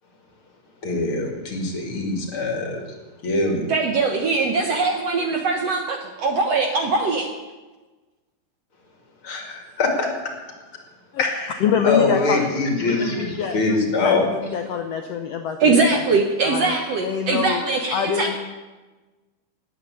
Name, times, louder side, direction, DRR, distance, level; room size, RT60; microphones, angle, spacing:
voice 1, 0.8-2.8 3.2-3.6 9.2-10.1 11.2-14.3, left 3 dB, 40° left, 2 dB, 3.0 m, -23 dB
voice 2, 3.7-7.3 15.6-18.4, right 4 dB, 60° right, 3 dB, 1.8 m, -21 dB
voice 3, 11.6-12.5 12.9-13.6 14.0-16.0 16.4-17.6 17.9-18.4, left 7 dB, 80° left, 5 dB, 1.4 m, -25 dB
19.0 x 8.7 x 8.4 m, 1.2 s
omnidirectional pair, 4.2 m